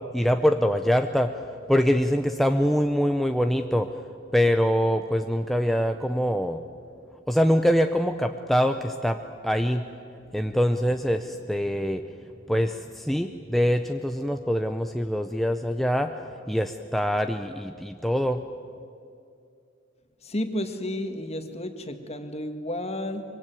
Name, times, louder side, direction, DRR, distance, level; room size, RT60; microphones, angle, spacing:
voice 1, 0.0-1.4 1.7-3.9 4.3-6.6 7.3-9.9 10.3-12.1 12.5-16.2 16.5-18.5, equal, ahead, 5 dB, 0.7 m, -24 dB
voice 2, 20.2-23.2, left 1 dB, 35° left, 7 dB, 1.9 m, -32 dB
24.0 x 23.5 x 9.2 m, 2.5 s
head